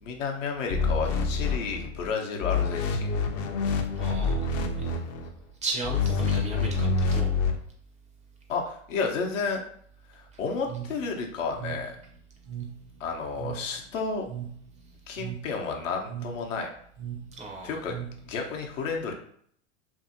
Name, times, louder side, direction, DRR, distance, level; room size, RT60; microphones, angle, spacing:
voice 1, 0.0-3.2 8.5-9.6 10.1-12.0 13.0-14.3 15.1-16.7 17.6-18.0 18.3-19.1, left 4 dB, 75° left, 1 dB, 0.8 m, -31 dB
sound 1, 0.7-2.1 2.4-5.3 5.8-7.5, left 4 dB, 45° left, 0.5 m, -27 dB
voice 2, 4.0-4.5 4.8-5.0 5.6-7.3 10.3-10.4 17.3-17.8, right 3 dB, 20° right, 1 dB, 0.4 m, -36 dB
sound 2, 10.7-18.5, right 10 dB, 70° right, 0.9 m, -40 dB
2.7 x 2.6 x 2.6 m, 0.62 s
hypercardioid pair, 95°, 38 cm